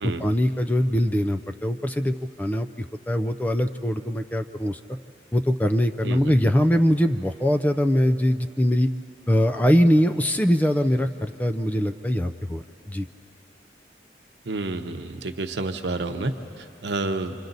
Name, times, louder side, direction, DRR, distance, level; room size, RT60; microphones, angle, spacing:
voice 1, 0.0-4.8 5.3-8.9 9.3-13.1, equal, 10° left, 6 dB, 0.4 m, -22 dB
voice 2, 14.5-17.3, right 2 dB, 80° right, 6 dB, 0.9 m, -30 dB
28.0 x 25.5 x 4.0 m, 3.0 s
head